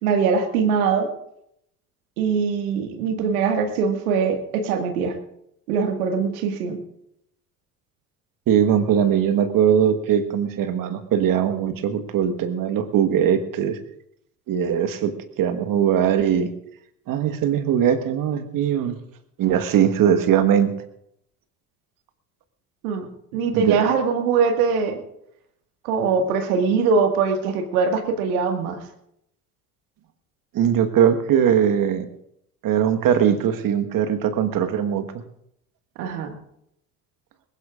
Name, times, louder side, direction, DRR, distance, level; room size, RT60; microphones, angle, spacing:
voice 1, 0.0-1.1 2.2-5.2 5.7-6.8 22.8-23.1 23.3-25.0 25.8-28.8 36.0-36.3, right 5 dB, 70° right, 6 dB, 1.9 m, -22 dB
voice 2, 8.5-13.8 14.5-16.5 17.1-18.9 19.4-20.7 23.5-23.8 30.5-32.0 32.6-35.0, right 9 dB, 45° right, 9 dB, 1.5 m, -20 dB
21.0 x 19.0 x 2.5 m, 0.77 s
figure-of-eight pair, 60°, 45 cm